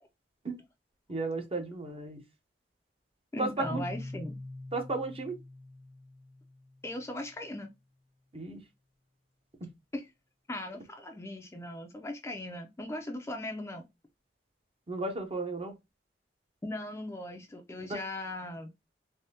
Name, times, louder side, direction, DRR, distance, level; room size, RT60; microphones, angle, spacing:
voice 1, 1.1-2.2 3.4-3.8 4.7-5.4 8.3-8.6 9.6-9.7 14.9-15.7 17.9-18.0, right 3 dB, 30° right, 0.6 m, -34 dB
voice 2, 3.3-4.4 6.8-7.7 9.9-10.1 10.5-13.8 16.6-18.7, left 1 dB, 15° left, 0.4 m, -38 dB
Keyboard (musical), 3.6-7.3, left 2 dB, 85° right, 1.8 m, -44 dB
3.3 x 2.0 x 2.8 m
head